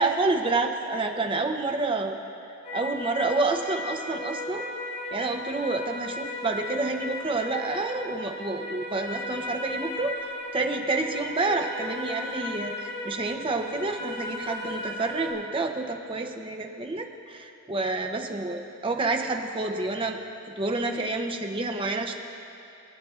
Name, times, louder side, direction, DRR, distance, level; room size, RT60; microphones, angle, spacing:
voice 1, 0.0-2.2 2.7-4.7 5.1-10.1 10.5-20.2 20.6-22.2, right 3 dB, 25° right, 4 dB, 0.7 m, -28 dB
sound 1, 2.6-15.3, left 1 dB, 45° left, 3.0 m, -36 dB
25.0 x 9.2 x 2.4 m, 2.7 s
head